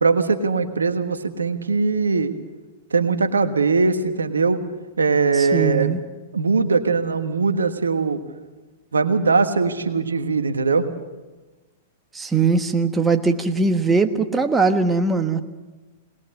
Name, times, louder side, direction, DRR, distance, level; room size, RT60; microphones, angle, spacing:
voice 1, 0.0-2.3 2.9-4.6 5.0-5.9 6.3-8.2 8.9-10.9, right 4 dB, 90° right, 8 dB, 1.3 m, -20 dB
voice 2, 5.4-6.0 12.1-15.4, right 4 dB, 10° right, 6 dB, 1.3 m, -20 dB
20.0 x 19.5 x 6.6 m, 1.2 s
hypercardioid pair, 110°, 0 cm